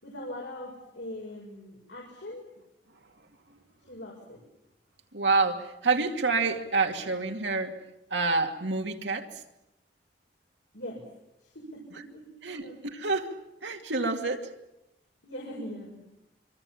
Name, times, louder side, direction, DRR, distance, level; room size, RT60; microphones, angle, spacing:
voice 1, 0.0-2.4 3.9-4.4 10.7-11.0 11.4-12.8 15.2-16.0, left 1 dB, 85° left, -1 dB, 6.2 m, -41 dB
voice 2, 5.1-7.7 8.1-9.3 12.4-12.6 12.9-13.3 13.6-14.5, right 3 dB, 85° right, 4 dB, 2.6 m, -27 dB
26.0 x 25.5 x 7.2 m, 0.90 s
head